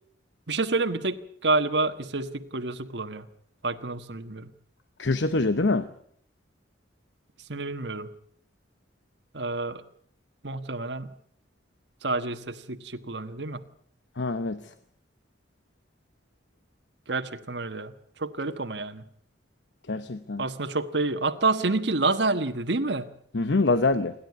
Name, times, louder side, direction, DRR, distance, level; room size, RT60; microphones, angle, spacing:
voice 1, 0.5-3.3 3.6-4.5 7.5-8.1 9.3-9.8 10.4-11.1 12.0-13.6 17.1-17.9 18.2-19.1 20.4-23.1, right 3 dB, 75° right, 7 dB, 1.4 m, -28 dB
voice 2, 5.0-5.9 14.2-14.6 19.9-20.4 23.3-24.1, left 3 dB, 85° left, 12 dB, 0.9 m, -24 dB
28.5 x 11.5 x 9.5 m, 0.63 s
head